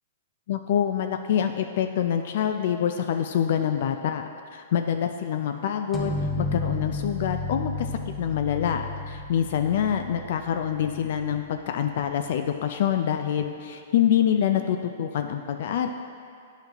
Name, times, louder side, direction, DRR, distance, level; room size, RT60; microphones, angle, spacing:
voice 1, 0.5-7.9 8.2-15.9, left 9 dB, 60° left, 6 dB, 0.3 m, -26 dB
sound 1, 5.9-11.5, left 3 dB, ahead, 0.7 m, -32 dB
9.0 x 5.6 x 2.9 m, 2.3 s
hypercardioid pair, 150°, 0 cm